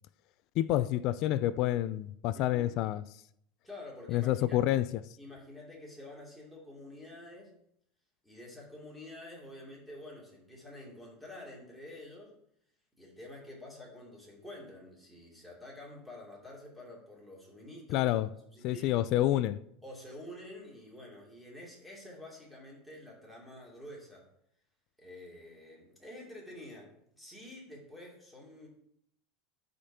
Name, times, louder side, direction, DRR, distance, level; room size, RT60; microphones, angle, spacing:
voice 1, 0.6-3.0 4.1-4.9 17.9-18.3 18.6-19.6, left 14 dB, 50° left, 0.3 m, -28 dB
voice 2, 2.3-2.7 3.6-4.6 5.2-7.5 8.2-12.3 13.0-18.1 18.5-18.9 19.8-24.3 25.0-28.7, left 1 dB, ahead, 2.6 m, -48 dB
12.0 x 5.1 x 2.8 m
supercardioid pair, 140°, 0 cm